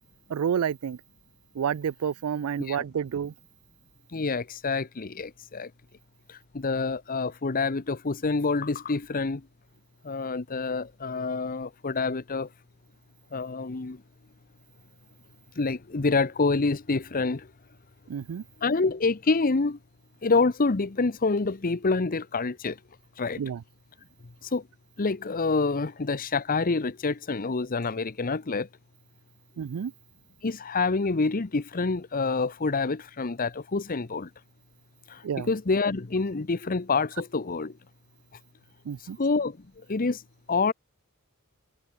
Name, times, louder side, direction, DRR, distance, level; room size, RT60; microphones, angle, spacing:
voice 1, 0.3-1.0 1.6-3.3 18.1-18.4 23.4-23.6 29.6-29.9 35.2-35.5 38.9-39.2, right 8 dB, 85° right, 0.4 m, -29 dB
voice 2, 4.1-5.7 6.3-9.5 10.0-12.5 13.3-14.0 15.6-17.5 18.6-19.8 20.2-22.8 23.2-23.4 24.4-24.6 25.0-28.7 30.4-34.3 35.1-37.7 39.2-39.6 39.9-40.2 40.5-40.7, left 3 dB, 40° left, 0.8 m, -27 dB
head